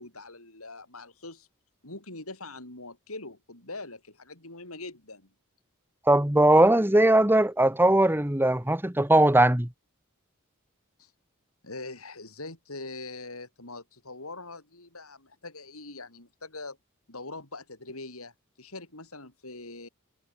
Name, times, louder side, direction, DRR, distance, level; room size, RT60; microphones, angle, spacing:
voice 1, 0.0-1.5 1.8-5.3 11.0-11.1 11.6-16.8 17.1-18.3 18.6-19.9, left 2 dB, 75° left, 7.7 m, -42 dB
voice 2, 6.1-9.7, right 1 dB, 10° right, 1.8 m, -20 dB
head